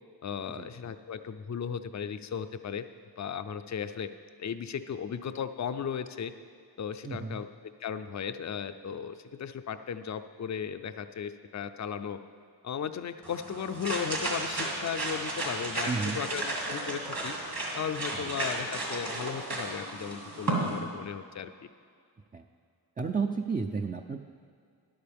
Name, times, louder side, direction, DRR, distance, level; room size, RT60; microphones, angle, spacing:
voice 1, 0.2-2.8 3.2-4.1 4.4-6.3 6.8-7.5 7.8-12.2 12.6-17.3 17.7-21.5, left 7 dB, 45° left, 10 dB, 0.5 m, -36 dB
voice 2, 7.0-7.4 15.9-16.2 18.1-18.4 22.3-22.5 23.0-24.2, right 4 dB, 20° right, 4 dB, 0.4 m, -32 dB
sound 1, 13.2-20.8, right 2 dB, 55° right, 2.4 m, -34 dB
13.0 x 10.5 x 3.5 m, 2.2 s
wide cardioid pair, 70°, 42 cm